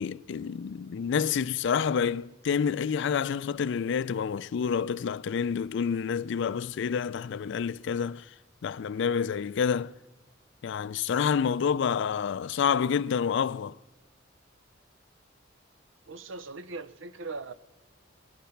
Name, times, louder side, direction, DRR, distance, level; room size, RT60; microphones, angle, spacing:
voice 1, 0.0-8.3 8.6-9.9 10.6-13.8, left 7 dB, 65° left, 0.4 m, -28 dB
voice 2, 16.1-17.5, right 3 dB, 75° right, 0.7 m, -39 dB
20.0 x 10.0 x 5.8 m
head